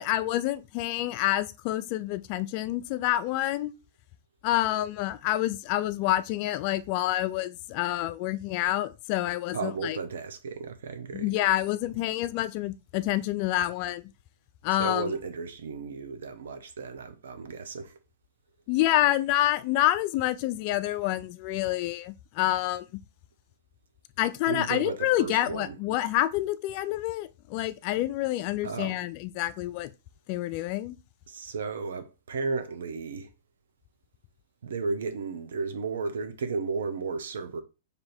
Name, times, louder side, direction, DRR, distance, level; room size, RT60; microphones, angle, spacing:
voice 1, 0.0-3.8 4.4-10.0 11.1-14.0 14.6-15.1 18.7-22.9 24.2-29.9 30.3-31.0, left 15 dB, 40° left, 0.3 m, -28 dB
voice 2, 9.5-11.3 14.8-18.0 24.5-25.8 28.6-29.0 31.3-33.3 34.6-37.6, right 4 dB, 80° right, 0.8 m, -34 dB
3.4 x 2.7 x 4.2 m
hypercardioid pair, 145°, 0 cm